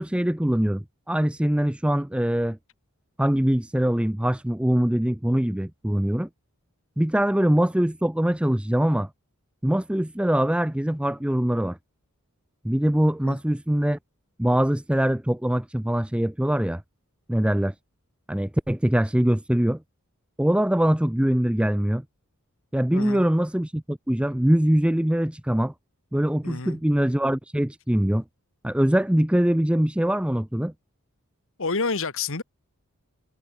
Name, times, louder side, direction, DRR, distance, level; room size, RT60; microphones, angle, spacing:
voice 1, 0.0-2.6 3.2-6.3 7.0-9.1 9.6-11.8 12.6-14.0 14.4-16.8 17.3-17.7 18.3-19.8 20.4-22.0 22.7-25.7 26.1-28.2 28.6-30.7, equal, 5° right, 0.5 m, -23 dB
voice 2, 22.9-23.3 26.4-26.8 31.6-32.4, left 4 dB, 60° left, 1.6 m, -29 dB
head